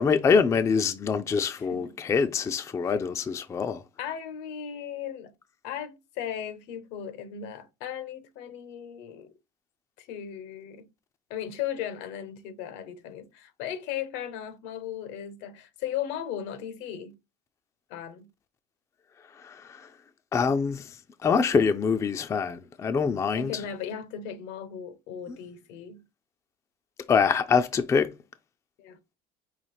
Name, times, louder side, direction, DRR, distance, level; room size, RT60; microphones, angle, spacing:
voice 1, 0.0-3.8 19.4-19.9 20.3-20.9 21.2-23.6 25.3-25.4 27.1-28.1, left 5 dB, 15° left, 0.3 m, -25 dB
voice 2, 1.5-1.9 2.8-3.0 4.0-5.3 5.6-9.3 10.0-10.9 11.3-17.2 17.9-18.3 23.4-26.1 28.8-29.0, left 9 dB, 75° left, 0.8 m, -37 dB
5.5 x 2.4 x 3.1 m
cardioid pair, 130°, 18 cm